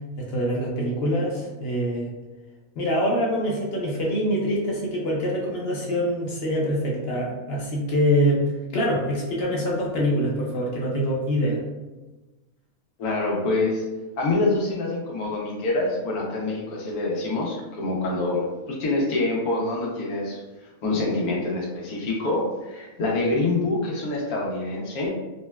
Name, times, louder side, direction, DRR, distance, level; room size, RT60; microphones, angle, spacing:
voice 1, 0.2-2.1 2.8-11.6, equal, 60° left, -3 dB, 0.6 m, -25 dB
voice 2, 13.0-13.8 14.2-20.4 20.8-25.1, left 2 dB, 85° left, -2 dB, 1.2 m, -26 dB
3.8 x 2.1 x 2.2 m, 1.1 s
omnidirectional pair, 1.5 m